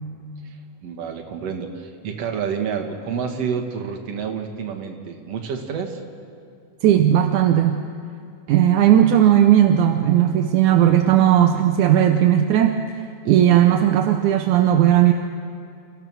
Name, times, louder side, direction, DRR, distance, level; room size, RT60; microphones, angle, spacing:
voice 1, 0.8-6.0, right 6 dB, 55° right, 3 dB, 2.5 m, -29 dB
voice 2, 6.8-7.8 8.5-12.8 13.3-15.1, right 11 dB, 75° right, 6 dB, 2.0 m, -16 dB
28.5 x 15.5 x 6.2 m, 2.4 s
omnidirectional pair, 3.7 m